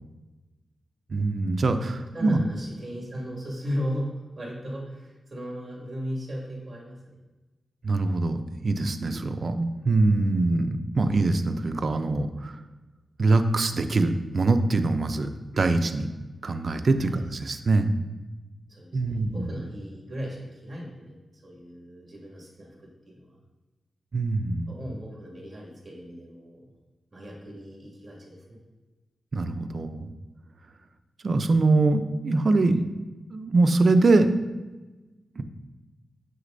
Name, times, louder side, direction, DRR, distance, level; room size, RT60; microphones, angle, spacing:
voice 1, 1.1-2.4 7.8-12.6 13.2-16.1 16.4-18.1 18.9-19.5 24.1-24.8 29.3-30.1 31.2-32.9 33.3-34.3 35.4-35.5, right 3 dB, 45° right, 8 dB, 0.4 m, -23 dB
voice 2, 1.9-7.1 16.9-17.3 18.7-23.4 24.7-26.7 27.1-28.6, equal, 25° right, -4 dB, 2.1 m, -37 dB
7.2 x 6.4 x 2.6 m, 1.2 s
wide cardioid pair, 150°, 0 cm